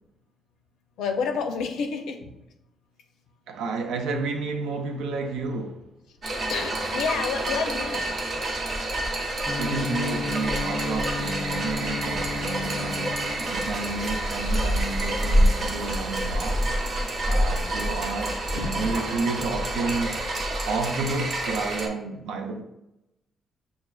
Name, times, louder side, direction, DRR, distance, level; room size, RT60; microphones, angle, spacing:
voice 1, 1.0-2.3 6.5-8.1 18.5-18.9, left 5 dB, 85° left, 0.5 m, -29 dB
voice 2, 3.5-5.8 9.6-16.7 17.3-20.2 20.7-22.6, right 3 dB, 85° right, 0.4 m, -31 dB
sound 1, 6.2-21.9, right 1 dB, 50° right, 0.7 m, -27 dB
Gong, 9.5-17.5, left 5 dB, 15° left, 0.4 m, -36 dB
6.1 x 2.3 x 2.3 m
cardioid pair, 90°, 0 cm